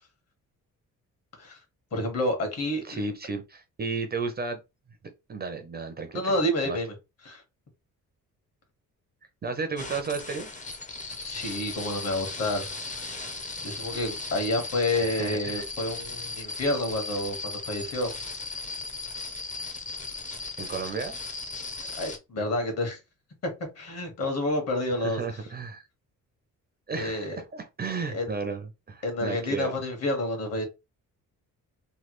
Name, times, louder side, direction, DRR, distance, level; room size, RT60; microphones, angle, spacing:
voice 1, 1.9-3.0 6.1-6.9 7.2-7.4 11.2-12.7 13.6-18.1 21.9-23.0 23.4-23.5 23.8-25.2 27.0-27.4 28.1-28.3 29.0-30.6, left 1 dB, 50° left, 1.4 m, -29 dB
voice 2, 2.8-4.6 5.3-6.4 6.6-6.8 9.4-10.5 14.9-15.6 20.6-21.2 25.0-25.8 26.9-29.7, right 4 dB, 30° right, 0.5 m, -33 dB
sound 1, 9.8-22.2, left 3 dB, 25° left, 0.6 m, -37 dB
3.2 x 2.2 x 3.0 m
cardioid pair, 135°, 33 cm